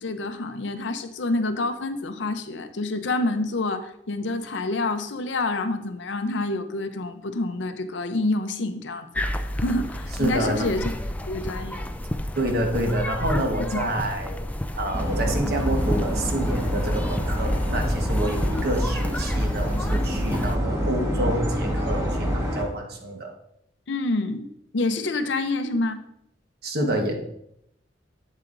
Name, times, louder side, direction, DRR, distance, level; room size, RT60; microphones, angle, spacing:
voice 1, 0.0-9.3 9.5-10.9 11.3-11.9 13.7-13.8 23.9-26.0, left 2 dB, 75° left, 9 dB, 0.6 m, -27 dB
sound 1, 9.1-20.6, left 1 dB, 10° left, 0.3 m, -31 dB
voice 2, 10.2-10.7 12.4-14.4 14.8-23.3 26.6-27.1, right 1 dB, 55° right, 3 dB, 1.2 m, -28 dB
sound 2, 14.9-22.6, equal, 15° right, 1.3 m, -26 dB
8.4 x 7.6 x 2.5 m, 0.77 s
head